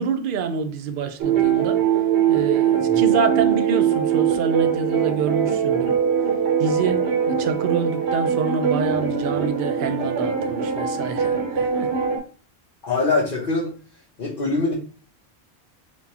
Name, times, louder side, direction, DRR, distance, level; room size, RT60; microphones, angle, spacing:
voice 1, 0.0-1.8 2.3-6.1 6.6-11.9, right 5 dB, 60° right, 0.7 m, -27 dB
sound 1, 1.2-12.2, right 8 dB, 90° right, 1.1 m, -22 dB
voice 2, 12.8-13.7 14.2-14.7, left 3 dB, 55° left, 1.2 m, -23 dB
4.5 x 2.3 x 4.1 m
omnidirectional pair, 1.1 m